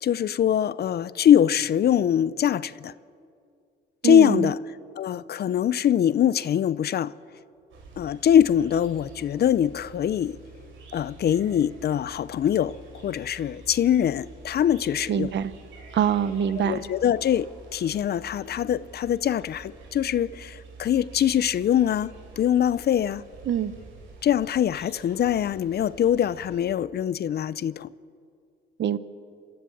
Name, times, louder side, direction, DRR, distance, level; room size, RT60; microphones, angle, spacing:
voice 1, 0.0-2.9 4.0-4.6 5.0-7.1 8.0-10.4 10.9-12.8 13.0-15.3 16.6-23.2 24.2-27.9, left 10 dB, 55° left, 0.6 m, -23 dB
voice 2, 4.0-4.5 15.1-15.5 15.9-16.8 23.5-23.7 28.8-29.0, right 9 dB, 65° right, 1.0 m, -24 dB
sound 1, 7.7-26.6, right 3 dB, 80° right, 5.0 m, -47 dB
24.5 x 13.5 x 8.6 m
cardioid pair, 90°, 20 cm